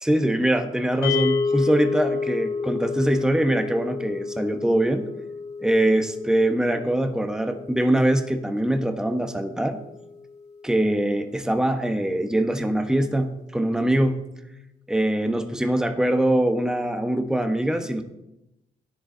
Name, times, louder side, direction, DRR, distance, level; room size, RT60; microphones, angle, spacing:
voice 1, 0.0-5.1 5.6-9.8 10.6-14.3 14.9-18.0, right 1 dB, 5° right, 6 dB, 1.2 m, -23 dB
sound 1, 1.0-11.3, left 5 dB, 75° left, 2.3 m, -31 dB
13.0 x 10.5 x 3.9 m, 0.88 s
cardioid pair, 80°, 17 cm